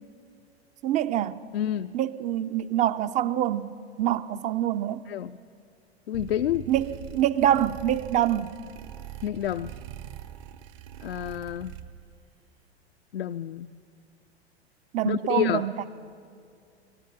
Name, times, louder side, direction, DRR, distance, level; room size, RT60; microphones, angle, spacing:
voice 1, 0.8-1.4 1.9-5.1 6.7-8.6 14.9-15.9, right 11 dB, 20° right, 0.6 m, -26 dB
voice 2, 1.5-1.9 5.1-5.4 6.1-6.7 9.2-9.7 11.0-11.7 13.1-13.7 15.1-15.6, left 11 dB, 60° left, 0.6 m, -28 dB
sound 1, 6.1-12.2, right 11 dB, 40° right, 1.0 m, -43 dB
24.0 x 18.0 x 9.7 m
figure-of-eight pair, 95°, 33 cm